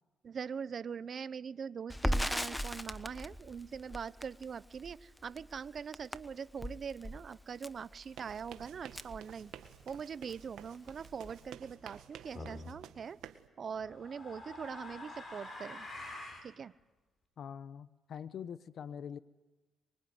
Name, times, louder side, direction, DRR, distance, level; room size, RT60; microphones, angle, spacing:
voice 1, 0.2-9.5 9.9-13.2 13.6-15.9 16.4-16.7, right 6 dB, 50° right, 17 dB, 0.9 m, -42 dB
Crackle, 1.9-10.0 10.3-10.4 10.7-11.5, equal, 5° left, 1.1 m, -39 dB
sound 1, 8.1-13.5, right 11 dB, 85° right, 1.8 m, -52 dB
sound 2, 12.3-12.7 13.7-16.5, left 2 dB, 35° left, 7.6 m, -46 dB
voice 2, 17.4-19.2, left 8 dB, 60° left, 14 dB, 1.1 m, -44 dB
24.5 x 24.0 x 9.6 m, 1.2 s
cardioid pair, 90°, 0 cm